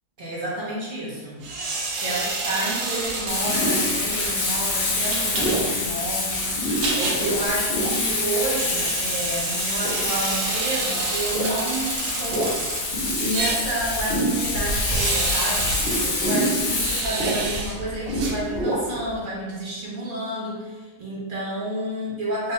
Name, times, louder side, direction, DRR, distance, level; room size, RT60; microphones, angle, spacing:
voice 1, 0.2-1.4 2.0-12.5 13.2-22.5, right 1 dB, 45° right, -6 dB, 0.7 m, -30 dB
sound 1, 1.4-18.9, right 2 dB, 85° right, 1.2 m, -30 dB
sound 2, 3.0-19.2, right 1 dB, 50° left, 1.0 m, -30 dB
Frying (food), 3.3-17.0, left 3 dB, 70° left, 0.5 m, -27 dB
3.4 x 2.2 x 3.0 m, 1.2 s
omnidirectional pair, 1.7 m